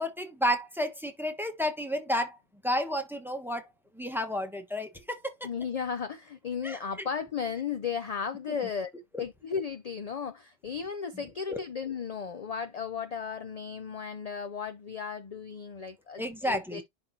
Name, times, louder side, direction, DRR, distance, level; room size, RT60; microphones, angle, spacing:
voice 1, 0.0-2.4 2.6-3.6 3.9-5.2 6.6-6.8 9.1-9.2 11.5-11.6 16.2-16.8, equal, ahead, 1.1 m, -31 dB
voice 2, 5.4-8.9 9.2-16.8, left 6 dB, 45° left, 0.5 m, -35 dB
10.5 x 3.6 x 2.8 m
omnidirectional pair, 1.2 m